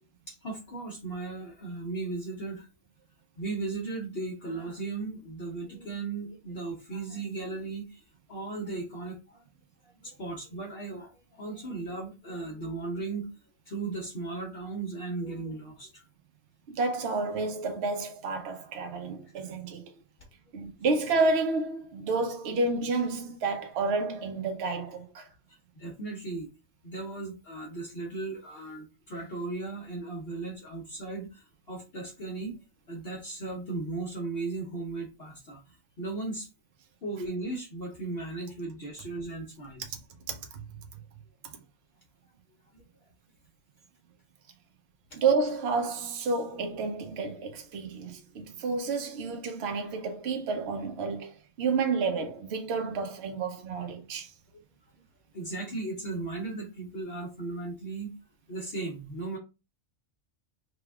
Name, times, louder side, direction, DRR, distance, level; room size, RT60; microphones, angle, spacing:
voice 1, 0.3-2.7 3.4-8.0 8.3-9.5 9.8-13.3 13.7-16.0 19.4-19.5 25.5-26.5 26.8-32.5 32.9-36.5 37.0-39.9 42.7-42.8 45.1-45.2 54.5-54.6 55.3-58.1 58.5-59.4, right 3 dB, 55° left, 1.0 m, -36 dB
voice 2, 16.7-19.9 20.5-25.3 40.3-40.6 45.1-54.3, right 3 dB, 60° right, 0.9 m, -30 dB
3.4 x 2.3 x 3.4 m
omnidirectional pair, 1.4 m